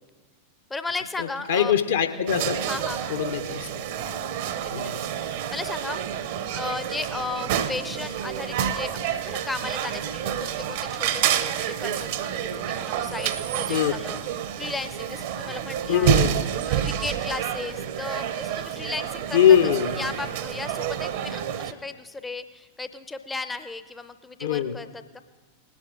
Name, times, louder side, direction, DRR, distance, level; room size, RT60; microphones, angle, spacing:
voice 1, 0.7-1.7 2.6-3.2 4.0-6.2 6.5-14.2 14.6-16.1 16.7-25.2, left 3 dB, 10° left, 10 dB, 0.5 m, -35 dB
voice 2, 1.5-2.6 3.1-3.8 4.7-5.0 13.7-13.9 15.9-16.5 19.3-20.0 24.4-24.8, left 9 dB, 65° left, 8 dB, 0.8 m, -22 dB
sound 1, 2.3-21.7, right 10 dB, 50° right, 0.6 m, -29 dB
19.5 x 9.7 x 3.8 m, 1.3 s
figure-of-eight pair, 90°, 0 cm